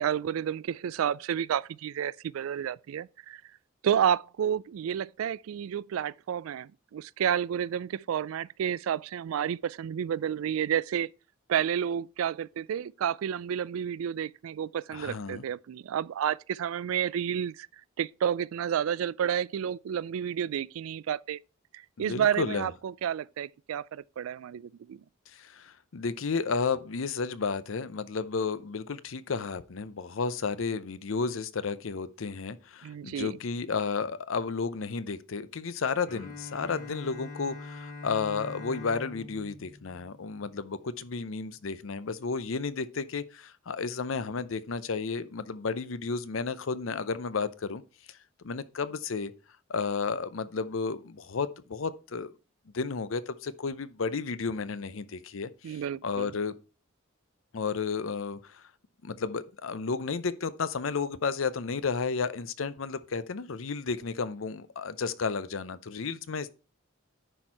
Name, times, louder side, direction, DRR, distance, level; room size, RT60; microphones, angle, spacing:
voice 1, 0.0-3.4 3.8-11.1 11.5-17.7 18.0-21.4 22.0-25.0 32.8-33.4 55.6-56.3, right 9 dB, 90° right, 0.3 m, -30 dB
voice 2, 14.9-15.5 22.0-22.7 25.3-47.8 48.1-48.2 48.4-49.3 49.7-52.3 52.7-56.6 57.5-58.6 59.0-66.5, left 5 dB, 75° left, 0.6 m, -32 dB
Bowed string instrument, 36.1-40.9, left 3 dB, 40° left, 2.3 m, -44 dB
10.0 x 4.4 x 4.6 m
head